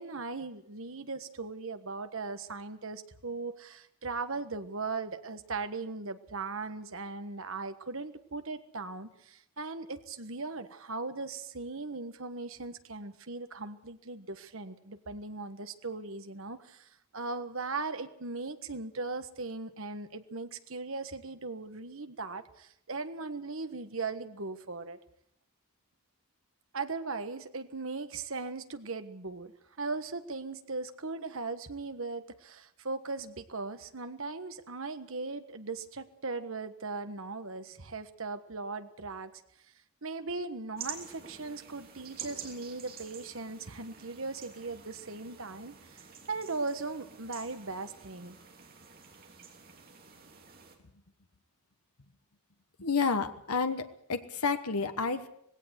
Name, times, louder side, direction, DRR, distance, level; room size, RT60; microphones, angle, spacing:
voice 1, 0.0-25.0 26.7-29.5 29.8-39.4 40.0-48.4, right 3 dB, 65° right, 10 dB, 1.4 m, -38 dB
sound 1, 40.8-50.8, right 6 dB, 40° right, 3.2 m, -48 dB
voice 2, 52.8-55.3, left 5 dB, 85° left, 9 dB, 1.2 m, -30 dB
19.0 x 17.0 x 8.2 m, 0.70 s
head